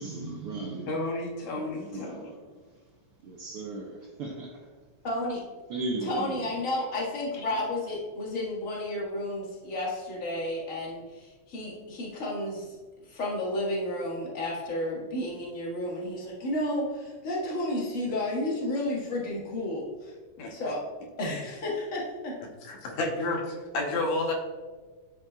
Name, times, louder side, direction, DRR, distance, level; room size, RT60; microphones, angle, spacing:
voice 1, 0.0-1.0 1.4-2.6 3.2-4.7 5.7-6.7 7.5-7.6, right 2 dB, 75° right, 1.3 m, -37 dB
voice 2, 0.9-2.3 20.4-20.5 22.7-24.3, left 2 dB, 80° left, 2.3 m, -31 dB
voice 3, 5.0-5.4 6.0-12.8 13.1-20.1 20.5-20.8 21.2-22.4, left 1 dB, 35° left, 1.7 m, -32 dB
11.0 x 5.3 x 2.3 m
omnidirectional pair, 3.3 m